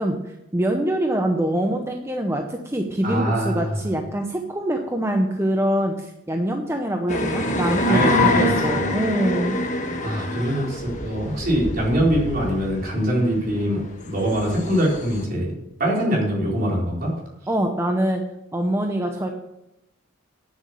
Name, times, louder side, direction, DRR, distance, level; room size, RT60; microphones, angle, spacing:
voice 1, 0.0-9.6 17.5-18.2 18.5-19.3, right 1 dB, 15° right, 3 dB, 0.7 m, -24 dB
voice 2, 3.0-3.7 7.9-8.9 10.0-15.5 15.8-17.1, equal, 45° right, -3 dB, 4.1 m, -23 dB
sound 1, 7.1-15.2, left 1 dB, 40° left, 1.3 m, -25 dB
9.6 x 7.7 x 6.7 m, 0.88 s
head